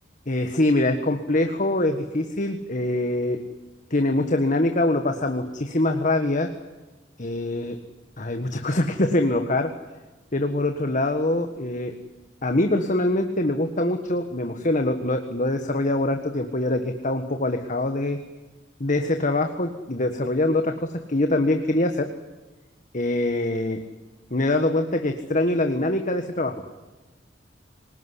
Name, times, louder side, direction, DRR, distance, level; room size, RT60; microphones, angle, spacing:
voice 1, 0.3-3.4 3.9-6.5 7.2-7.8 8.2-9.7 10.3-11.9 12.4-18.2 18.8-22.1 22.9-23.8 24.3-26.6, left 1 dB, 45° left, 6 dB, 1.6 m, -24 dB
26.0 x 19.5 x 9.9 m, 1.2 s
head